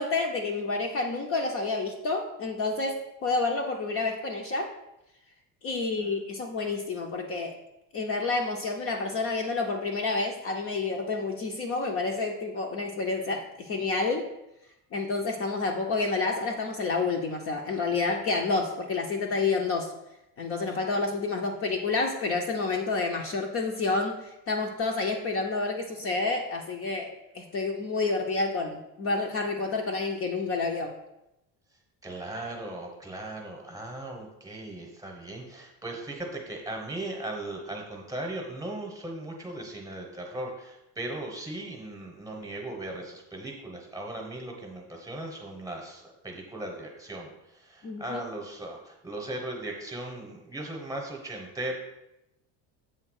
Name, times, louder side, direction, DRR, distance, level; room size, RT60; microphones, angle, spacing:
voice 1, 0.0-4.7 5.6-7.5 7.9-14.2 14.9-19.9 20.4-30.9 47.8-48.2, left 3 dB, 35° left, 1 dB, 0.7 m, -29 dB
voice 2, 32.0-47.3 47.6-51.8, right 1 dB, 10° right, 1 dB, 1.1 m, -38 dB
7.8 x 3.5 x 6.4 m, 0.87 s
cardioid pair, 165°, 39 cm